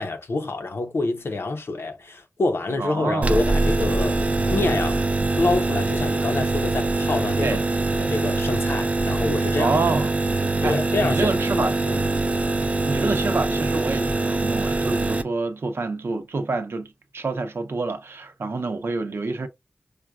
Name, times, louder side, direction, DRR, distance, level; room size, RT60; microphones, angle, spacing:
voice 1, 0.0-4.2 4.5-5.0 5.4-7.6 8.0-9.7 10.6-12.0, left 2 dB, 75° left, 0.7 m, -27 dB
voice 2, 2.8-3.4 7.4-7.6 9.6-10.1 10.6-11.8 12.8-19.5, right 3 dB, 75° right, 0.6 m, -27 dB
sound 1, 3.2-15.2, right 2 dB, 35° right, 0.3 m, -23 dB
4.9 x 2.2 x 2.3 m
wide cardioid pair, 85°, 4 cm